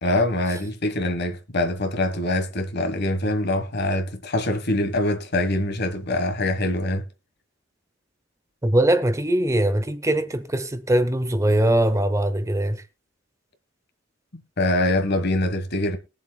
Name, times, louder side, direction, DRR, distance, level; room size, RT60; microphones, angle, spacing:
voice 1, 0.0-7.1 14.6-16.0, left 1 dB, 60° left, 1.6 m, -24 dB
voice 2, 8.6-12.8, right 1 dB, 15° right, 0.9 m, -21 dB
21.0 x 7.3 x 2.4 m
head